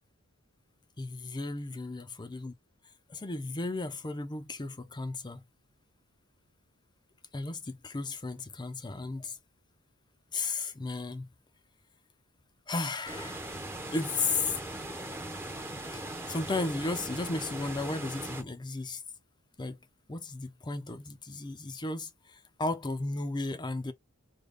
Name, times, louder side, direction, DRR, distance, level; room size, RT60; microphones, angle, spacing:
voice 1, 1.0-2.5 3.1-5.4 7.3-9.4 10.3-11.3 12.7-13.6 13.9-14.5 15.9-19.0 19.6-19.8 20.1-23.9, left 3 dB, 20° left, 0.5 m, -34 dB
sound 1, 13.1-18.4, right 1 dB, 10° right, 0.7 m, -39 dB
3.3 x 2.2 x 3.7 m
head